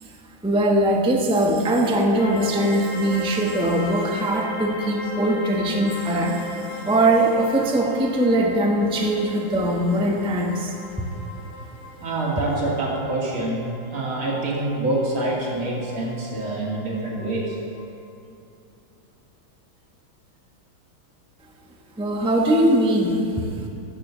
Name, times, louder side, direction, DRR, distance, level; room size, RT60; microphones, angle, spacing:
voice 1, 0.4-10.7 22.0-23.4, right 1 dB, 5° right, 0 dB, 0.6 m, -21 dB
sound 1, 2.2-17.8, left 2 dB, 85° left, 2.7 m, -38 dB
voice 2, 12.0-17.6, right 2 dB, 85° right, -4 dB, 3.2 m, -26 dB
13.0 x 6.9 x 7.2 m, 2.6 s
omnidirectional pair, 2.2 m